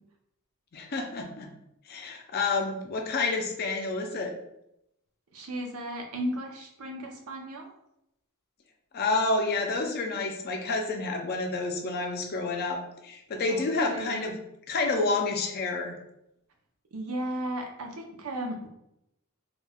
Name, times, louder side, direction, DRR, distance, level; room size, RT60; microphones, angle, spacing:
voice 1, 0.7-1.5 1.9-4.3 8.9-14.4 14.7-16.0, left 3 dB, 45° left, 3 dB, 0.5 m, -29 dB
voice 2, 5.3-7.7 13.5-14.3 16.9-18.7, right 1 dB, 70° right, 2 dB, 0.6 m, -35 dB
2.4 x 2.2 x 3.4 m, 0.80 s
head